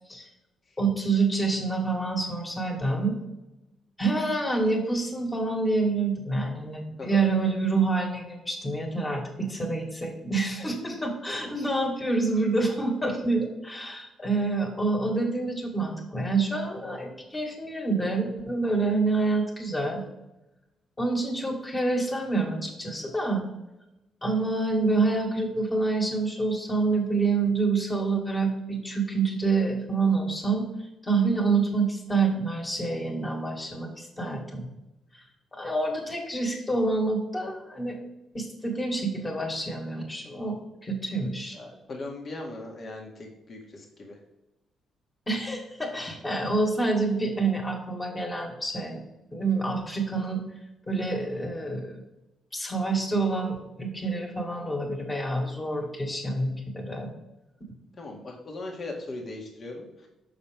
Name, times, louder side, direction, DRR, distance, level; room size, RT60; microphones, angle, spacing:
voice 1, 0.8-3.2 4.0-20.0 21.0-23.5 24.2-30.7 31.0-34.7 35.1-35.2 35.5-38.0 38.3-40.6 40.8-41.6 45.3-49.0 49.3-50.4 50.9-52.0 52.5-57.1, right 3 dB, 20° left, 1 dB, 2.0 m, -27 dB
voice 2, 41.5-44.2 58.0-60.1, left 2 dB, 45° left, 0 dB, 1.7 m, -39 dB
6.4 x 6.0 x 3.5 m, 0.98 s
cardioid pair, 90°, 0 cm